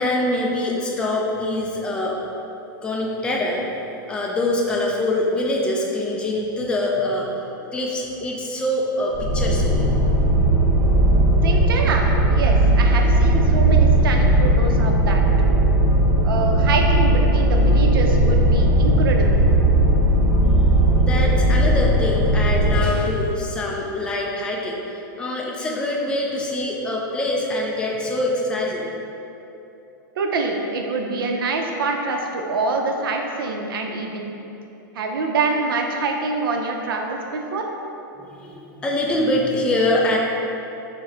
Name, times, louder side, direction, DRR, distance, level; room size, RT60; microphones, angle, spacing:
voice 1, 0.0-2.2 2.8-9.9 20.8-28.9 38.2-40.2, left 1 dB, 10° left, -2 dB, 0.4 m, -24 dB
sound 1, 9.1-22.8, right 1 dB, 35° right, 0.8 m, -17 dB
voice 2, 11.4-15.5 16.2-19.4 30.2-34.2 34.9-37.7, right 3 dB, 85° right, 2 dB, 0.5 m, -25 dB
4.8 x 2.1 x 3.9 m, 3.0 s
hypercardioid pair, 140°, 11 cm